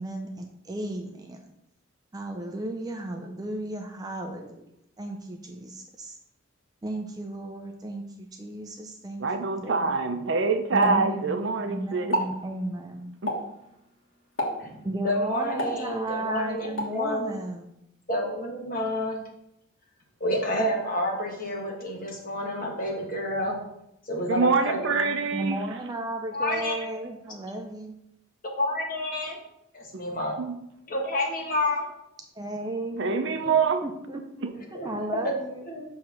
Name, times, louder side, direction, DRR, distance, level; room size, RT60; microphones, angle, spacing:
voice 1, 0.0-1.4 2.1-4.7 5.0-6.2 6.8-10.0 10.7-11.4 11.7-13.2 14.8-17.7 25.3-28.0 32.3-33.0 33.8-35.7, right 1 dB, 20° right, 4 dB, 0.4 m, -34 dB
voice 2, 9.2-12.2 13.2-13.3 24.3-25.6 29.9-30.0 30.4-30.5 33.0-33.8 34.4-34.5, right 4 dB, 60° right, 7 dB, 0.6 m, -25 dB
Explosion, 10.8-11.7 12.0-12.4 13.3-13.6 14.4-14.8 15.6-16.3 16.8-17.0, equal, 70° left, 1.4 m, -30 dB
voice 3, 15.0-17.4 18.1-19.2 20.2-23.6 24.1-25.1 26.3-26.9 28.6-29.4 29.7-30.4 30.9-31.8 33.4-33.5 34.7-34.9 35.2-35.3 35.7-35.8, left 1 dB, 45° left, 0 dB, 1.4 m, -29 dB
6.5 x 3.2 x 5.9 m, 0.82 s
head